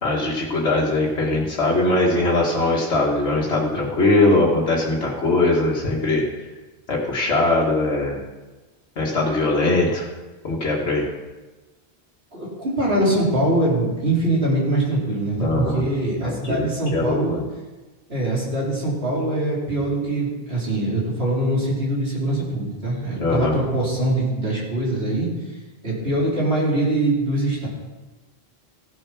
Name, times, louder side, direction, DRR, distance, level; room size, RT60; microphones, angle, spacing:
voice 1, 0.0-6.2 6.9-8.2 9.0-10.1 10.4-11.0 15.4-15.8 16.2-17.4 23.2-23.5, left 2 dB, 85° left, -4 dB, 1.9 m, -21 dB
voice 2, 12.3-17.4 18.1-25.3 25.8-27.7, right 1 dB, 70° right, -6 dB, 4.3 m, -23 dB
15.0 x 7.3 x 5.9 m, 1.2 s
omnidirectional pair, 1.1 m